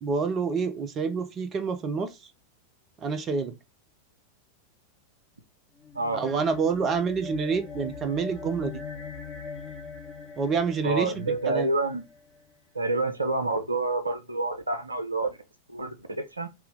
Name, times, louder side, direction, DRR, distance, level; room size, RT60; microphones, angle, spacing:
voice 1, 0.0-2.3 3.0-3.6 6.1-8.8 10.4-11.7, right 5 dB, 30° right, 0.6 m, -28 dB
sound 1, 5.8-12.4, left 5 dB, 25° left, 1.5 m, -42 dB
voice 2, 10.8-12.0 12.7-15.4 15.7-16.5, right 2 dB, 80° right, 0.6 m, -28 dB
3.3 x 2.9 x 3.6 m
figure-of-eight pair, 90°, 0 cm